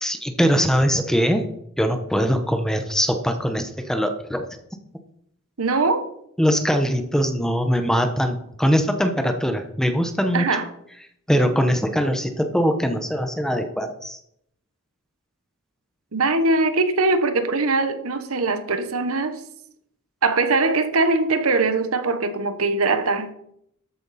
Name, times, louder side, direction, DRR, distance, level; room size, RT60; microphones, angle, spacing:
voice 1, 0.0-1.5 1.8-4.5 6.4-10.5 11.3-14.2, equal, 5° left, 1.0 m, -22 dB
voice 2, 5.6-6.0 10.3-10.7 16.1-19.4 20.2-23.3, right 3 dB, 70° right, 1.1 m, -21 dB
13.0 x 8.8 x 4.2 m
head